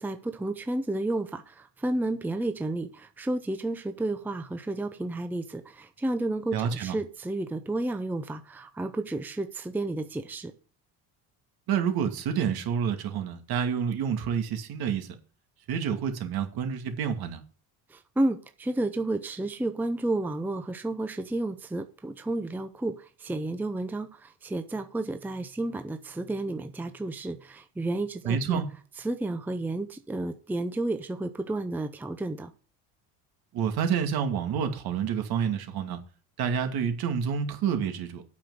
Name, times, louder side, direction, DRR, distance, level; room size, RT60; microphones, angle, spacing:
voice 1, 0.0-10.5 17.9-28.6 29.0-32.5, right 2 dB, 5° right, 0.6 m, -31 dB
voice 2, 6.5-7.0 11.7-15.1 15.7-17.4 28.2-28.7 33.5-36.0 36.4-38.2, right 7 dB, 60° right, 2.4 m, -28 dB
8.5 x 6.0 x 8.0 m
cardioid pair, 145°, 41 cm